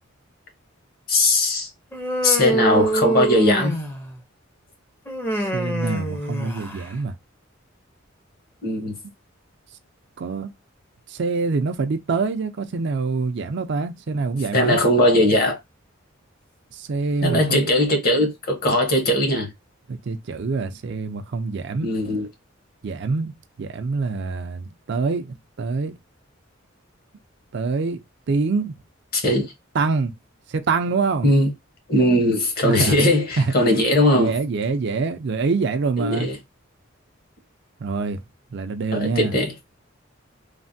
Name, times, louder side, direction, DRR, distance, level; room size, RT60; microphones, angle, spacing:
voice 1, 1.1-1.7 2.2-3.7 8.6-9.0 14.5-15.6 17.2-19.5 21.8-22.3 29.1-29.5 31.2-31.5 31.9-34.3 36.0-36.4 38.9-39.5, left 1 dB, 50° left, 1.1 m, -19 dB
Human voice, 1.9-4.2 5.1-6.9, right 1 dB, 10° left, 0.6 m, -25 dB
voice 2, 5.4-7.1 10.2-10.5 11.1-14.8 16.7-17.7 19.9-21.9 22.8-23.3 23.6-26.0 27.5-28.0 28.3-28.7 29.7-30.1 30.5-31.3 32.6-33.0 33.4-33.5 34.1-36.3 37.8-38.2 38.5-39.3, right 4 dB, 60° right, 0.4 m, -25 dB
3.2 x 2.1 x 2.6 m
head